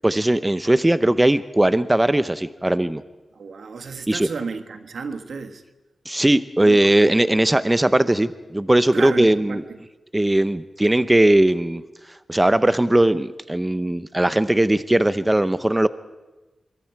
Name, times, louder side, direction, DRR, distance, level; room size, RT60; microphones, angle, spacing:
voice 1, 0.0-3.0 4.1-4.3 6.1-9.6 10.1-11.8 12.3-15.9, right 1 dB, 15° right, 13 dB, 0.8 m, -19 dB
voice 2, 3.4-5.6 6.6-7.1 8.9-9.8, right 5 dB, 80° right, 8 dB, 1.6 m, -32 dB
25.5 x 22.5 x 4.7 m, 1.1 s
cardioid pair, 60°, 0 cm